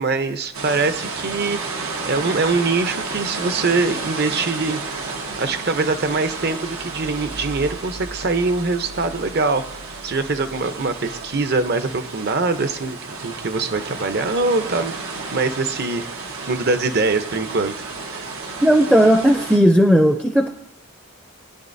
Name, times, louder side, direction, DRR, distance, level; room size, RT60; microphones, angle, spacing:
voice 1, 0.0-4.8 5.4-16.1 16.5-18.3, right 3 dB, 50° right, 9 dB, 0.8 m, -23 dB
sound 1, 0.5-19.6, right 3 dB, 90° right, 1.4 m, -32 dB
voice 2, 18.6-20.5, equal, 5° right, 5 dB, 0.5 m, -15 dB
21.0 x 10.0 x 2.7 m, 0.82 s
head